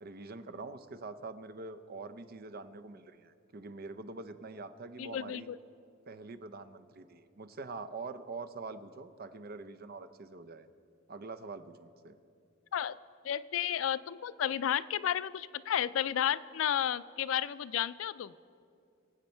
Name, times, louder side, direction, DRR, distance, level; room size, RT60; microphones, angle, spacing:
voice 1, 0.0-5.5 6.1-10.7 11.1-12.2, right 3 dB, 50° right, 10 dB, 0.6 m, -45 dB
voice 2, 5.0-5.6 12.7-13.0 13.2-18.3, left 9 dB, 85° left, 17 dB, 0.4 m, -32 dB
24.0 x 8.2 x 4.4 m, 2.5 s
head